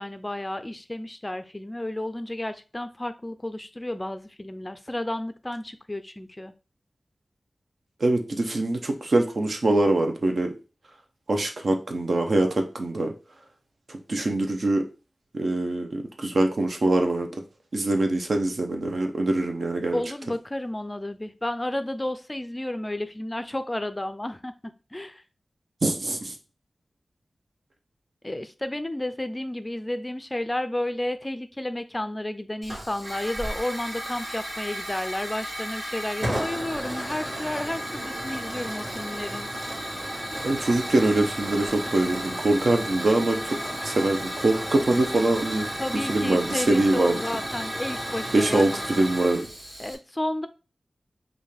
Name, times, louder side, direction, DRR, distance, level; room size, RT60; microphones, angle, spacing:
voice 1, 0.0-6.5 19.9-25.2 28.2-39.5 45.8-48.8 49.8-50.5, left 1 dB, 20° left, 11 dB, 0.4 m, -32 dB
voice 2, 8.0-10.5 11.3-13.1 13.9-14.8 15.3-17.3 17.7-20.0 25.8-26.3 40.4-43.6 43.8-45.7 46.1-47.2 48.3-49.5, right 2 dB, 65° right, 3 dB, 0.8 m, -23 dB
Hiss / Fire, 32.6-49.9, equal, 40° right, 2.1 m, -33 dB
5.4 x 2.6 x 3.3 m, 0.32 s
wide cardioid pair, 90°, 0 cm